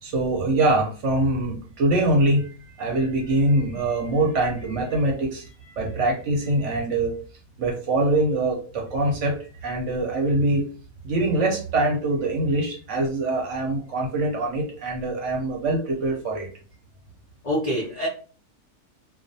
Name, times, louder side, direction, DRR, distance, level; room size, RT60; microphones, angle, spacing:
voice 1, 0.0-2.5 2.8-5.4 5.8-7.2 7.6-10.7 11.0-16.5, right 2 dB, 65° right, 0 dB, 0.9 m, -23 dB
voice 2, 17.4-18.1, equal, 50° left, -4 dB, 0.4 m, -26 dB
2.4 x 2.2 x 2.6 m, 0.39 s
omnidirectional pair, 1.5 m